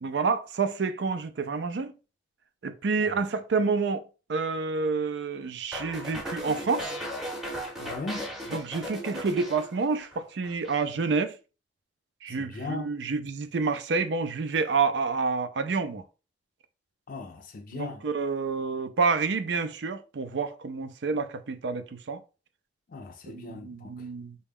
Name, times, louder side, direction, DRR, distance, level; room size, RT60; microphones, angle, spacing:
voice 1, 0.0-1.9 2.6-4.0 4.3-6.9 8.5-11.4 12.2-16.0 17.7-22.2 23.3-24.4, right 4 dB, 75° right, 0.5 m, -28 dB
sound 1, 5.7-10.2 10.4-10.9, equal, 5° right, 0.7 m, -37 dB
voice 2, 7.8-8.3 12.5-12.9 17.1-18.0 22.9-23.9, left 3 dB, 50° left, 0.4 m, -37 dB
4.0 x 2.3 x 3.4 m
head